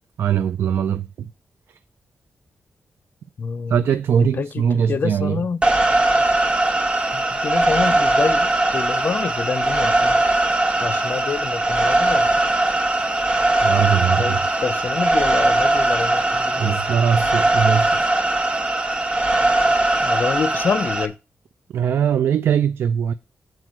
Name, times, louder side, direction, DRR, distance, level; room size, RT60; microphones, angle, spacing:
voice 1, 0.2-1.3 1.7-1.8 3.7-5.5 13.6-14.4 16.6-18.1 21.7-23.1, right 8 dB, 85° right, 0.4 m, -21 dB
voice 2, 3.4-3.8 4.4-5.6 7.1-10.2 10.8-12.3 14.2-16.8 20.0-21.1, left 6 dB, 55° left, 0.5 m, -27 dB
sound 1, 5.6-21.1, right 2 dB, 30° right, 1.0 m, -20 dB
7.8 x 4.5 x 6.0 m
wide cardioid pair, 120°, 4 cm